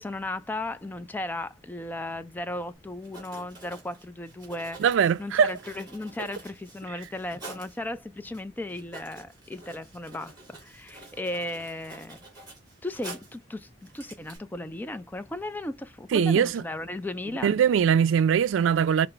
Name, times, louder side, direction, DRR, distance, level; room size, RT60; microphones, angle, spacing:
voice 1, 0.0-12.2 12.8-17.6, left 1 dB, 10° left, 0.3 m, -36 dB
Writing, 3.0-7.8 8.3-8.4 8.7-13.4 13.8-14.4, right 2 dB, 20° right, 2.4 m, -47 dB
voice 2, 4.8-5.5 16.1-16.6 17.4-19.1, right 7 dB, 90° right, 0.3 m, -21 dB
4.8 x 2.0 x 4.4 m
head